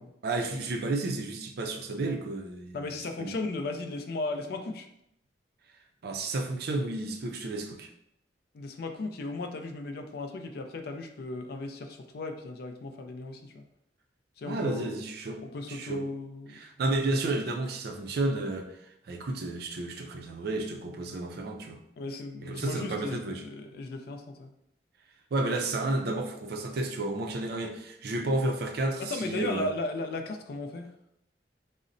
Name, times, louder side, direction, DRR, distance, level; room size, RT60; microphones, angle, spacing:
voice 1, 0.2-2.8 3.2-3.3 6.0-7.9 14.5-15.4 15.7-16.0 16.5-18.8 19.1-21.8 22.4-23.4 25.3-29.7, right 2 dB, 60° right, 4 dB, 0.4 m, -31 dB
voice 2, 2.7-4.9 8.5-13.6 14.4-14.9 15.4-16.6 22.0-24.5 29.0-30.9, left 2 dB, 60° left, 6 dB, 0.4 m, -36 dB
3.9 x 2.0 x 2.5 m, 0.77 s
head